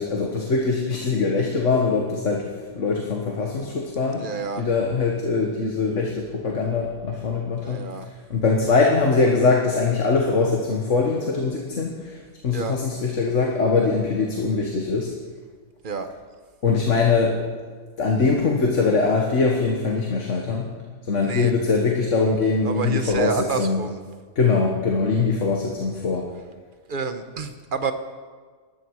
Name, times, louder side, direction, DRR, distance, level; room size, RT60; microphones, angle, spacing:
voice 1, 0.0-2.5 2.7-4.2 4.6-7.8 8.3-15.1 16.6-17.4 18.0-20.7 21.0-23.8 24.4-26.3, left 4 dB, 75° left, 0 dB, 1.8 m, -22 dB
voice 2, 4.2-4.7 7.6-8.1 12.5-12.8 15.8-16.1 21.2-21.5 22.6-24.0 26.9-27.9, right 5 dB, 45° right, 8 dB, 1.2 m, -29 dB
19.0 x 14.0 x 4.8 m, 1.5 s
omnidirectional pair, 1.3 m